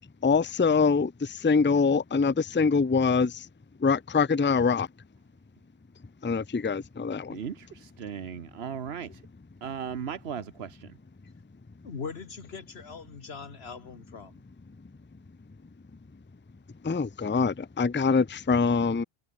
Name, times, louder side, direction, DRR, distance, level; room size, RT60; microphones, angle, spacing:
voice 1, 0.2-1.1 1.4-3.3 3.8-4.9 6.2-7.4 16.8-19.0, left 5 dB, 15° left, 0.4 m, -24 dB
voice 2, 7.3-9.1 9.6-10.9, right 7 dB, 80° right, 1.3 m, -37 dB
voice 3, 11.8-14.4, left 5 dB, 80° left, 1.8 m, -41 dB
omnidirectional pair, 1.0 m